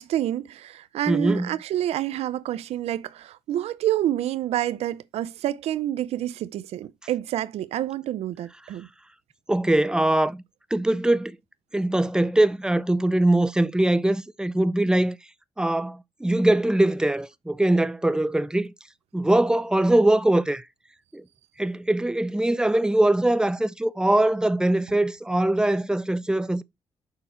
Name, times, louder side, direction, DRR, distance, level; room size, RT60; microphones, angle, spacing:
voice 1, 0.0-8.9, right 12 dB, 85° right, 0.5 m, -28 dB
voice 2, 1.1-1.5 9.5-10.4 10.7-11.4 11.7-15.2 15.6-18.7 19.1-20.6 21.1-21.2 21.6-26.6, right 1 dB, 5° right, 0.6 m, -22 dB
6.9 x 5.6 x 4.3 m
cardioid pair, 85°, 11 cm